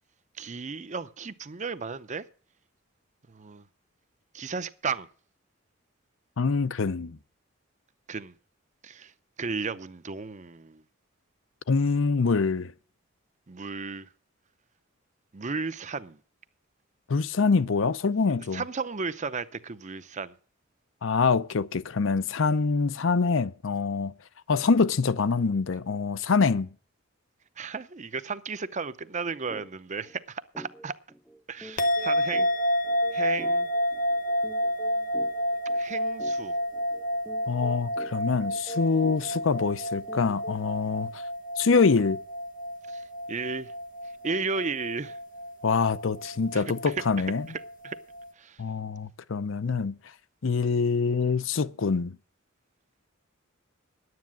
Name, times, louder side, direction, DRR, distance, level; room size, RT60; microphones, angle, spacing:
voice 1, 0.4-2.2 3.3-3.6 4.3-5.1 8.1-8.3 8.8-9.1 9.4-10.8 13.5-14.1 15.3-16.2 18.5-20.3 27.6-30.9 31.5-32.5 33.1-33.7 35.7-36.5 42.9-43.7 44.2-45.2 46.5-46.6 47.8-48.0 48.4-48.6, right 4 dB, 35° right, 0.6 m, -34 dB
voice 2, 6.4-7.2 11.7-12.7 17.1-18.6 21.0-24.1 24.5-26.7 37.5-41.2 41.6-42.2 45.6-47.5 48.6-49.9 50.4-52.2, left 4 dB, 65° left, 0.6 m, -25 dB
sound 1, 29.5-29.7 30.0-30.2 30.5-40.8, equal, 5° left, 0.7 m, -47 dB
sound 2, 31.8-48.3, equal, 40° left, 0.9 m, -30 dB
10.5 x 9.6 x 7.4 m
head